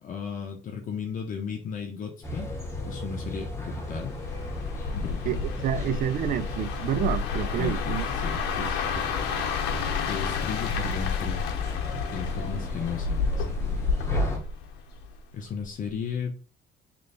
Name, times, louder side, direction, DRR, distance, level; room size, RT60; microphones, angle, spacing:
voice 1, 0.0-2.5 2.8-4.2 4.9-5.5 5.7-5.9 7.6-9.1 10.1-11.4 12.1-14.3 15.3-16.4, left 6 dB, 50° left, 0.7 m, -35 dB
sound 1, 2.2-14.4, left 2 dB, 15° left, 1.2 m, -35 dB
sound 2, 4.1-15.2 15.6-15.9, left 5 dB, 85° left, 0.8 m, -30 dB
voice 2, 5.6-8.0 8.6-9.2, right 10 dB, 55° right, 0.5 m, -29 dB
3.1 x 3.0 x 4.2 m
cardioid pair, 110°, 17 cm